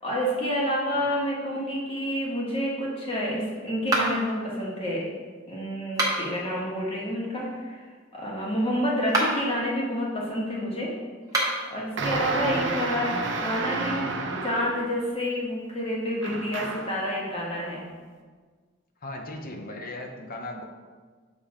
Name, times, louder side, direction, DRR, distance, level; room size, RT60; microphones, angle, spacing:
voice 1, 0.0-5.0 5.5-7.8 8.1-10.9 11.4-13.1 13.4-14.1 14.4-17.8, equal, 30° left, -4 dB, 1.6 m, -29 dB
sound 1, 3.9-4.4 5.8-6.4 9.0-9.5 11.2-11.7, right 2 dB, 15° right, 1.1 m, -26 dB
sound 2, 12.0-15.0 16.2-17.0, right 3 dB, 60° right, 0.7 m, -30 dB
voice 2, 19.0-20.6, left 1 dB, 45° left, 3 dB, 0.7 m, -37 dB
7.2 x 3.7 x 4.9 m, 1.5 s
head